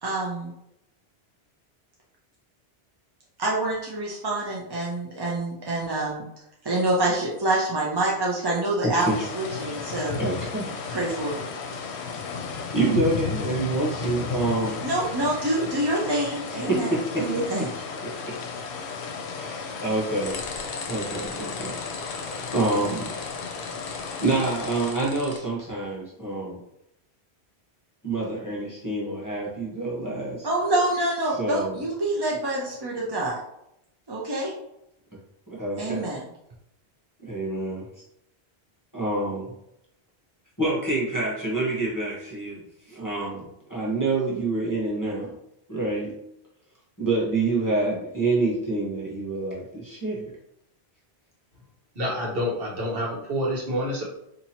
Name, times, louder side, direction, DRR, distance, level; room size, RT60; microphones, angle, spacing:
voice 1, 0.0-0.5 3.4-6.2 6.6-9.0 9.4-10.2 10.9-11.4 14.8-16.9 17.2-17.7 30.4-33.4 34.1-34.5 35.8-36.2, right 1 dB, 30° right, -4 dB, 0.4 m, -26 dB
voice 2, 8.8-9.2 10.2-10.9 12.7-14.8 16.5-17.3 17.6-17.7 18.0-18.4 19.3-20.4 20.9-21.8 22.5-23.2 24.0-26.6 28.0-30.5 31.4-31.8 35.5-36.1 37.2-37.9 38.9-39.5 40.6-45.3 45.7-46.2 47.0-50.2, right 2 dB, 20° left, -6 dB, 0.8 m, -27 dB
sound 1, 9.0-24.9, left 5 dB, 75° left, 0.8 m, -34 dB
sound 2, 20.2-25.4, left 4 dB, 50° left, 0.5 m, -38 dB
voice 3, 51.9-54.0, equal, 60° right, -3 dB, 1.2 m, -28 dB
2.8 x 2.6 x 4.1 m, 0.81 s
omnidirectional pair, 1.1 m